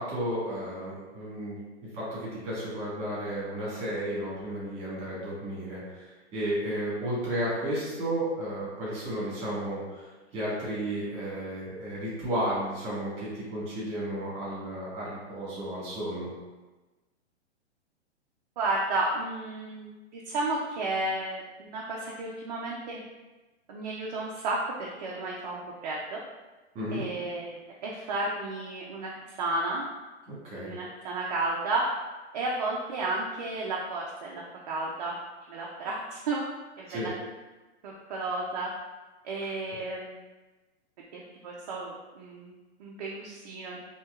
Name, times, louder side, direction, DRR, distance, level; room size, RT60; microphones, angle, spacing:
voice 1, 0.0-1.6 1.9-16.3 26.7-27.0 30.3-30.7 36.9-37.1, right 1 dB, 15° right, -7 dB, 1.5 m, -33 dB
voice 2, 18.6-23.0 23.7-26.2 26.9-27.5 27.8-29.8 30.5-31.8 32.3-35.1 35.5-36.5 36.8-37.1 37.8-38.7 39.2-40.2 41.1-42.5 42.8-43.8, right 2 dB, 40° right, -3 dB, 0.4 m, -32 dB
4.2 x 2.8 x 2.3 m, 1.2 s
hypercardioid pair, 155°, 35 cm